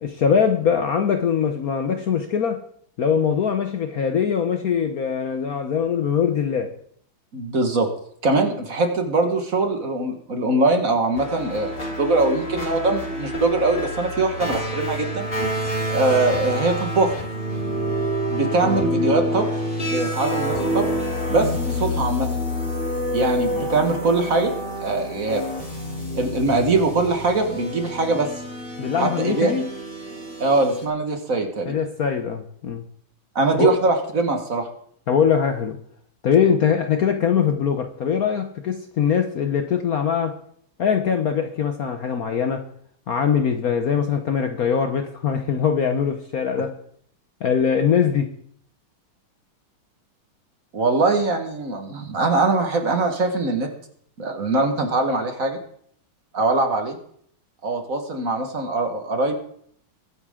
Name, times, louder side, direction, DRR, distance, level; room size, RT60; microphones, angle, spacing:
voice 1, 0.0-2.6 3.0-6.7 18.6-18.7 28.8-29.7 31.7-32.8 33.6-33.7 35.1-35.8 36.2-40.4 40.8-42.7 43.1-46.8 47.4-48.3, left 7 dB, 55° left, 1.1 m, -22 dB
voice 2, 7.3-7.9 8.2-15.3 15.9-17.1 18.3-19.5 19.9-20.8 21.3-22.3 23.1-24.5 24.8-25.4 26.1-28.3 29.0-29.5 30.4-31.8 33.3-34.7 50.7-53.7 54.2-55.6 56.3-57.0 57.6-59.4, right 3 dB, 45° right, 1.8 m, -22 dB
sound 1, 11.2-30.9, equal, 25° left, 3.6 m, -28 dB
22.0 x 9.3 x 3.7 m
omnidirectional pair, 2.3 m